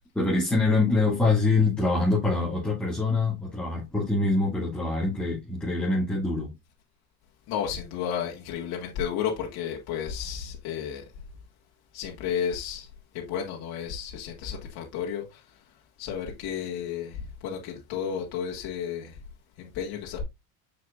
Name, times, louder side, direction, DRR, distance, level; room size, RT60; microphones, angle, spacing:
voice 1, 0.1-6.5, left 3 dB, ahead, 2.3 m, -24 dB
voice 2, 7.5-11.0 11.9-12.9 13.1-15.4 16.0-19.2 19.6-20.2, left 8 dB, 55° left, 1.7 m, -32 dB
6.7 x 6.1 x 2.5 m
supercardioid pair, 100°, 45 cm